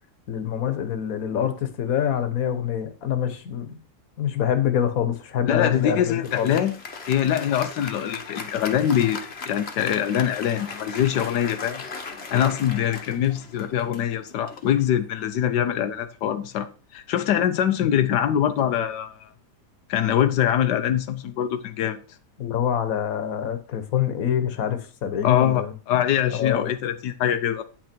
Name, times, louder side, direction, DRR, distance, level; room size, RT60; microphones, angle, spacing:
voice 1, 0.3-3.7 4.2-6.5 17.8-17.9 22.4-25.7 26.3-26.7, left 9 dB, 60° left, 1.5 m, -25 dB
voice 2, 5.5-6.7 7.1-11.8 12.3-19.3 19.9-22.0 25.2-27.6, left 10 dB, 90° left, 1.4 m, -23 dB
Applause, 5.7-15.5, left 4 dB, 40° left, 1.2 m, -38 dB
9.2 x 6.0 x 4.4 m
omnidirectional pair, 1.8 m